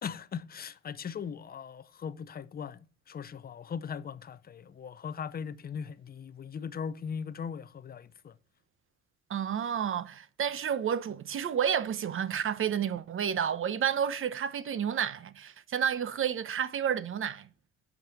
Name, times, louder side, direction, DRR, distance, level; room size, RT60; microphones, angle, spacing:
voice 1, 0.0-8.4, left 7 dB, 30° left, 0.7 m, -39 dB
voice 2, 9.3-17.5, right 8 dB, 40° right, 0.9 m, -30 dB
8.3 x 5.3 x 7.7 m
cardioid pair, 95°, 31 cm